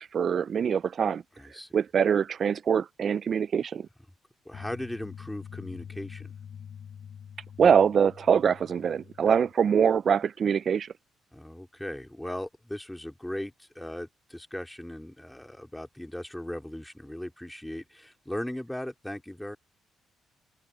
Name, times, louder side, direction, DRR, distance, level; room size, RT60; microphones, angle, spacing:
voice 1, 0.0-1.2 1.7-3.9 7.6-10.9, right 7 dB, 50° right, 0.4 m, -24 dB
voice 2, 1.4-1.7 4.5-6.3 9.3-9.4 11.3-19.6, left 1 dB, 5° left, 3.4 m, -38 dB
sound 1, 4.5-9.5, left 8 dB, 55° left, 6.4 m, -45 dB
cardioid pair, 90°, 0 cm